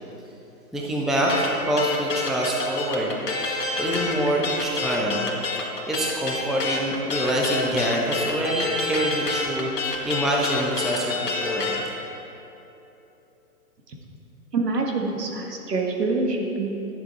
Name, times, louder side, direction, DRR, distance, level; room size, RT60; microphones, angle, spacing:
voice 1, 0.7-5.3 5.9-11.7, right 1 dB, ahead, -3 dB, 0.4 m, -26 dB
sound 1, 1.3-11.8, left 3 dB, 90° left, 1.9 m, -28 dB
voice 2, 14.5-16.9, right 3 dB, 85° right, 1 dB, 1.8 m, -26 dB
11.5 x 7.4 x 4.5 m, 2.9 s
hypercardioid pair, 180°, 47 cm